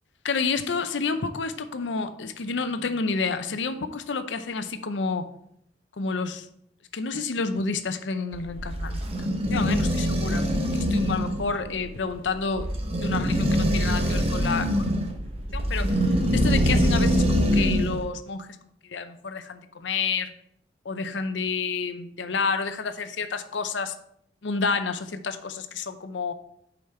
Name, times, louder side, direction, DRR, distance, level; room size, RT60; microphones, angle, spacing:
voice 1, 0.2-5.3 6.0-6.5 6.9-12.7 13.0-15.0 15.5-16.0 16.3-18.5 18.8-20.3 20.8-23.9 24.4-26.3, left 4 dB, 80° left, 10 dB, 0.6 m, -29 dB
sound 1, 8.3-18.0, equal, 35° right, 0.9 m, -24 dB
6.9 x 5.1 x 4.3 m, 0.71 s
head